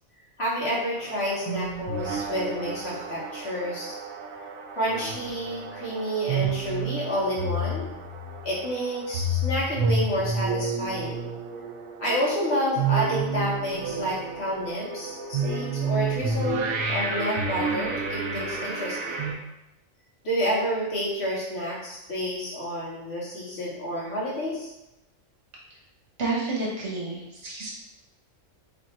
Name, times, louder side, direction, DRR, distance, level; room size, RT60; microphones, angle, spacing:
voice 1, 0.4-3.9 4.7-7.8 8.4-11.3 12.0-19.2 20.2-24.7, equal, 55° left, -6 dB, 1.3 m, -29 dB
sound 1, 1.0-19.3, right 3 dB, 80° right, 1.0 m, -30 dB
voice 2, 26.2-27.7, right 3 dB, 60° right, -4 dB, 1.3 m, -30 dB
3.3 x 2.5 x 4.2 m, 0.92 s
omnidirectional pair, 1.4 m